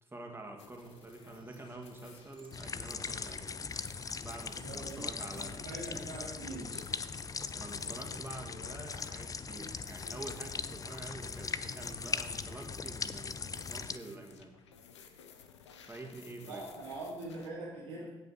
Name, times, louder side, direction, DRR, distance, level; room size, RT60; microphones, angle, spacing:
voice 1, 0.0-3.6 4.2-5.7 7.5-14.5 15.8-16.7, right 2 dB, 15° right, 1 dB, 2.0 m, -47 dB
sound 1, 0.6-17.5, left 6 dB, 80° left, 0.6 m, -56 dB
Bird / Water, 0.8-8.2, right 4 dB, 35° right, 1.7 m, -61 dB
sound 2, 2.5-14.0, left 5 dB, 25° left, 0.5 m, -40 dB
voice 2, 4.6-6.8 16.5-18.1, right 2 dB, 80° right, -5 dB, 2.8 m, -43 dB
16.0 x 5.6 x 4.3 m, 1.1 s
figure-of-eight pair, 45°, 15 cm